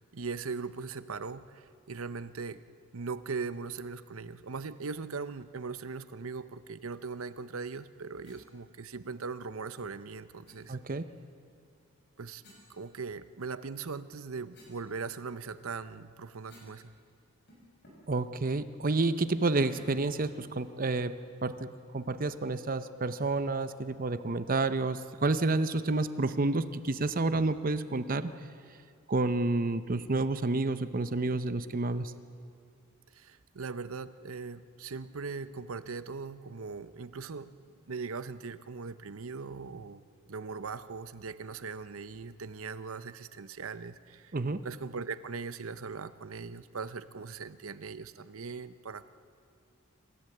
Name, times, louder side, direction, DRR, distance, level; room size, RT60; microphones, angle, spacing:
voice 1, 0.1-2.6 2.9-10.8 12.2-12.4 12.7-16.9 33.1-37.5 37.9-40.0 40.3-44.3 44.6-49.1, right 4 dB, 80° right, 13 dB, 0.8 m, -40 dB
sound 1, 8.2-8.4 10.4-10.6 12.4-13.4 13.9-16.8 17.1-17.2 17.5-18.1 18.5-18.7 19.6-20.1, left 1 dB, 55° left, 6.6 m, -57 dB
voice 2, 10.7-11.1 18.1-21.1 21.4-28.3 29.1-32.1 44.3-44.6, right 3 dB, 40° right, 12 dB, 0.7 m, -29 dB
27.0 x 14.0 x 7.9 m, 2.5 s
head